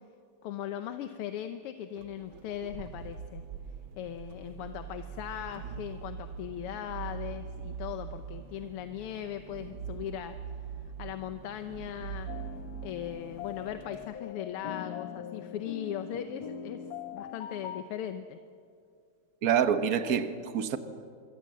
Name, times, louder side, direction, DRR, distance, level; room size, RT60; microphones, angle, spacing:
voice 1, 0.4-3.4 4.0-10.4 10.6-10.7 11.0-12.3 12.8-18.4, left 10 dB, 90° left, 1.8 m, -39 dB
sound 1, 1.9-14.1, right 7 dB, 65° right, 1.7 m, -43 dB
sound 2, 12.3-17.8, left 8 dB, 60° left, 1.0 m, -42 dB
voice 2, 19.4-20.8, right 8 dB, 50° right, 1.4 m, -26 dB
26.0 x 22.5 x 7.6 m
omnidirectional pair, 2.4 m